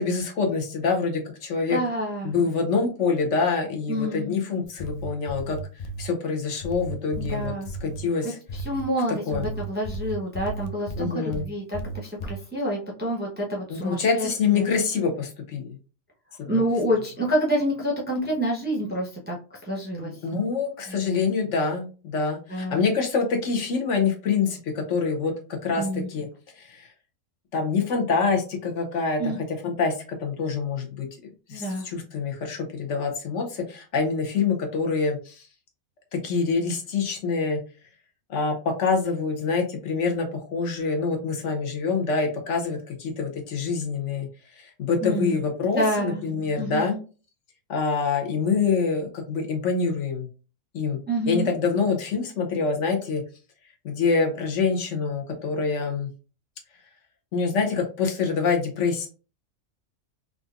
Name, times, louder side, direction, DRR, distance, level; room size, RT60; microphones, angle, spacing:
voice 1, 0.0-1.8 2.2-5.6 6.0-7.5 7.8-8.4 9.3-9.5 11.0-11.4 13.7-15.8 16.4-16.6 20.0-25.3 25.6-26.3 26.5-26.9 27.5-29.3 29.6-29.9 30.2-35.5 36.1-37.6 38.3-44.3 44.5-46.9 47.7-50.3 50.7-51.0 51.3-53.2 53.8-56.1 57.3-59.1, left 5 dB, 70° left, 3 dB, 1.0 m, -26 dB
voice 2, 1.7-2.3 3.9-4.3 7.2-7.7 8.2-14.7 16.5-19.4 19.6-20.1 20.9-21.2 22.5-22.8 25.8-26.1 29.2-29.4 31.5-31.8 45.0-45.4 45.7-46.2 46.6-47.0 51.1-51.5, equal, 10° right, -3 dB, 0.6 m, -28 dB
sound 1, 4.6-6.1 6.6-8.0 8.5-8.9 9.3-11.5 11.7-12.4, right 2 dB, 85° left, 0.3 m, -34 dB
3.7 x 2.5 x 2.3 m, 0.35 s
omnidirectional pair, 1.3 m